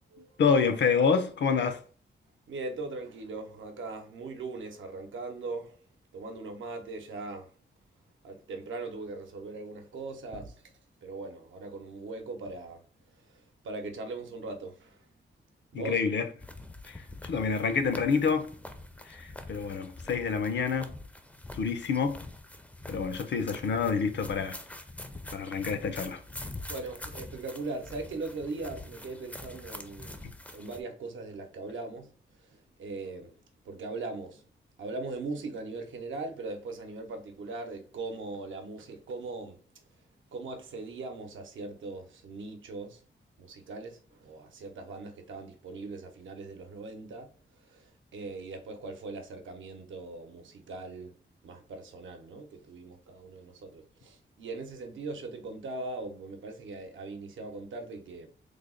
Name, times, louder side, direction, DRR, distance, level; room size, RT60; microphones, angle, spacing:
voice 1, 0.4-1.8 15.7-16.3 16.9-17.0 17.2-18.5 19.1-20.9 21.5-22.2 22.9-24.6 25.3-26.2, left 5 dB, 65° left, 0.5 m, -27 dB
voice 2, 2.5-5.8 6.1-7.5 8.2-10.6 11.0-12.8 13.2-15.0 15.7-16.0 26.7-30.2 30.5-32.1 32.5-33.4 33.6-34.5 34.8-39.6 40.3-43.0 43.4-47.3 47.7-51.1 51.4-58.3, right 3 dB, 85° right, 0.8 m, -40 dB
sound 1, 16.4-30.8, left 2 dB, 5° left, 0.4 m, -45 dB
3.3 x 2.1 x 3.7 m
wide cardioid pair, 105°, 20 cm